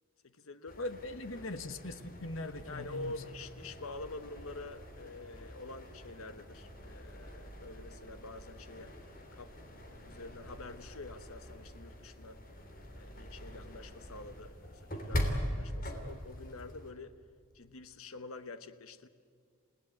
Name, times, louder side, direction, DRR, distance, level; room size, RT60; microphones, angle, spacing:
voice 1, 0.2-0.8 1.4-1.5 2.7-8.9 9.3-9.5 10.1-12.4 12.9-17.1 17.5-19.1, left 2 dB, 90° left, 11 dB, 1.1 m, -47 dB
sound 1, 0.7-16.9, equal, 45° left, 3.2 m, -43 dB
voice 2, 0.8-3.1, left 2 dB, 70° left, 11 dB, 1.3 m, -40 dB
sound 2, 2.1-14.6, equal, 10° left, 7.0 m, -55 dB
28.5 x 18.0 x 9.0 m, 2.3 s
head